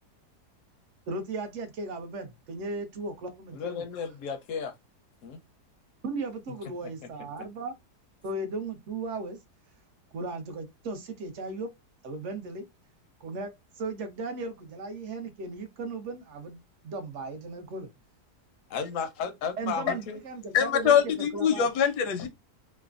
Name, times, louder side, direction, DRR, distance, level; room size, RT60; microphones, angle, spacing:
voice 1, 1.1-3.8 6.0-7.7 8.2-9.4 10.1-11.7 12.0-12.7 13.2-13.5 13.8-17.9 19.6-21.7, right 3 dB, 60° right, 0.9 m, -36 dB
voice 2, 3.5-4.7 5.2-5.4 18.7-20.2, left 6 dB, 70° left, 0.8 m, -34 dB
voice 3, 20.5-22.3, left 8 dB, 85° left, 1.1 m, -23 dB
3.2 x 2.1 x 2.3 m
omnidirectional pair, 1.7 m